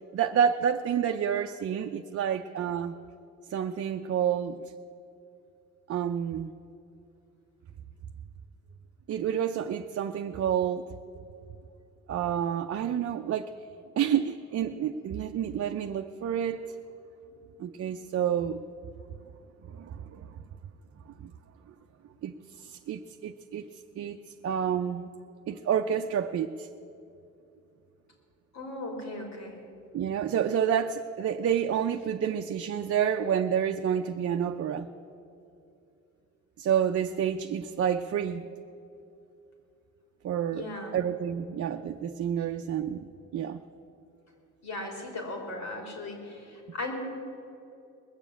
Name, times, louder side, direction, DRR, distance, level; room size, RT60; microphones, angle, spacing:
voice 1, 0.1-2.9 3.5-4.7 5.9-6.5 9.1-10.9 12.1-13.5 14.0-16.6 17.6-18.6 19.7-20.3 21.2-21.3 22.2-23.7 24.0-24.2 24.4-25.1 25.5-26.7 29.9-34.9 36.6-38.4 40.2-40.7 40.9-43.6, right 8 dB, 50° right, 5 dB, 0.6 m, -29 dB
voice 2, 28.5-29.6 40.5-41.0 42.4-42.5 44.6-46.9, left 2 dB, 65° left, 2 dB, 3.5 m, -37 dB
20.5 x 7.1 x 8.6 m, 2.7 s
cardioid pair, 90°, 30 cm